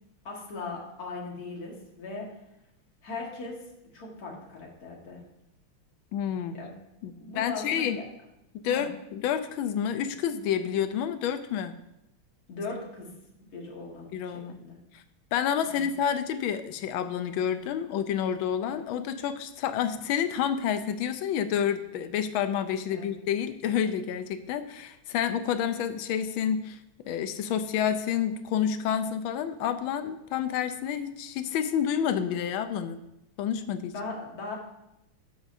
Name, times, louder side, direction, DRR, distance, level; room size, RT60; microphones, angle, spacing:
voice 1, 0.2-2.3 3.0-5.2 6.5-6.7 7.2-8.1 8.6-8.9 12.5-13.1 13.4-14.8 15.6-16.0 22.9-23.1 33.9-34.6, left 3 dB, 50° left, -1 dB, 2.0 m, -39 dB
voice 2, 6.1-6.6 7.0-8.0 8.6-11.7 14.1-14.6 14.9-15.0 15.3-26.8 27.1-33.0 33.4-33.9, left 8 dB, 80° left, 10 dB, 1.4 m, -29 dB
12.0 x 7.2 x 2.6 m, 0.85 s
omnidirectional pair, 2.3 m